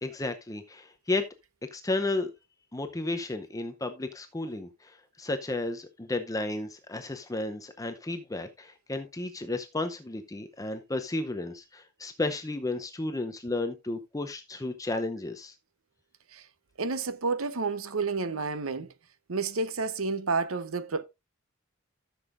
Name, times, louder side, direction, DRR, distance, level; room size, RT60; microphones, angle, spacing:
voice 1, 0.0-1.3 1.6-2.3 2.7-15.5, left 2 dB, 15° left, 0.7 m, -33 dB
voice 2, 16.8-18.9 19.3-21.0, right 4 dB, 80° right, 0.8 m, -30 dB
13.5 x 7.0 x 2.5 m
head